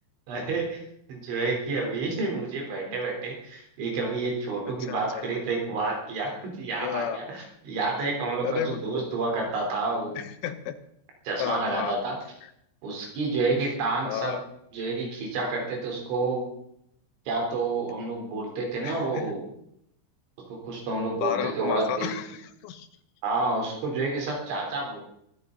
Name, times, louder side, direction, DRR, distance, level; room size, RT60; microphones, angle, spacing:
voice 1, 0.3-0.8 1.1-10.2 11.3-12.2 12.8-14.4 14.7-16.5 17.3-19.5 20.6-22.1 23.2-25.0, right 3 dB, 75° right, 0 dB, 6.3 m, -29 dB
voice 2, 4.6-5.3 6.8-7.2 8.4-8.8 10.2-10.8 11.4-12.0 12.4-12.5 13.6-13.7 14.1-14.4 18.8-19.3 21.1-22.9, left 10 dB, 85° left, 8 dB, 3.5 m, -33 dB
24.0 x 11.0 x 4.0 m, 0.72 s
omnidirectional pair, 5.3 m